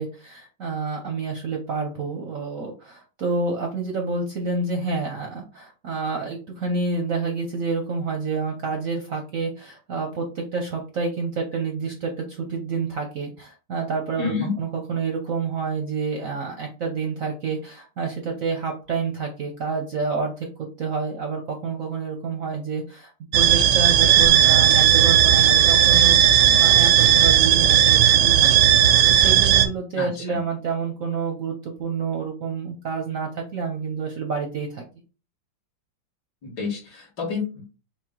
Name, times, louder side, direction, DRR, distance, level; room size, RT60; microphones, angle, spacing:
voice 1, 0.0-14.3 14.6-28.5 28.8-34.8, right 4 dB, 60° right, 2 dB, 0.9 m, -28 dB
voice 2, 14.2-14.5 30.0-30.4 36.4-37.7, left 5 dB, 60° left, -4 dB, 2.3 m, -29 dB
sound 1, 23.3-29.7, right 10 dB, 80° right, 1.3 m, -16 dB
5.9 x 2.3 x 3.7 m, 0.34 s
omnidirectional pair, 2.1 m